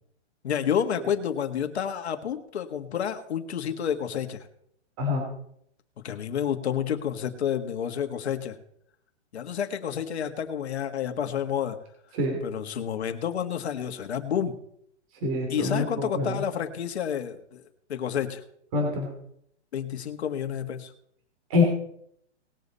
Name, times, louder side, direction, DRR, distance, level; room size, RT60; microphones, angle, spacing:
voice 1, 0.4-4.5 6.0-8.6 9.3-11.8 12.4-14.6 15.5-17.6 17.9-18.4 19.7-20.9, left 8 dB, 65° left, 7 dB, 1.7 m, -29 dB
voice 2, 15.2-16.4 18.7-19.1 21.5-21.6, left 3 dB, 30° right, 0 dB, 2.9 m, -25 dB
19.5 x 7.4 x 4.1 m, 0.70 s
hypercardioid pair, 165°, 35 cm